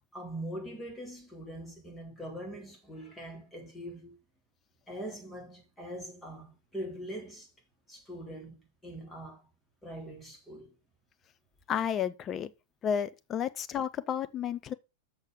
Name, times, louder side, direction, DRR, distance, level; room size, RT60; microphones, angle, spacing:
voice 1, 0.1-4.2 4.9-7.5 7.9-9.5 9.8-10.7, right 1 dB, 10° left, 3.5 m, -42 dB
voice 2, 11.7-12.5 12.8-14.7, left 8 dB, 30° left, 0.7 m, -32 dB
6.5 x 6.4 x 5.3 m
figure-of-eight pair, 90°, 0 cm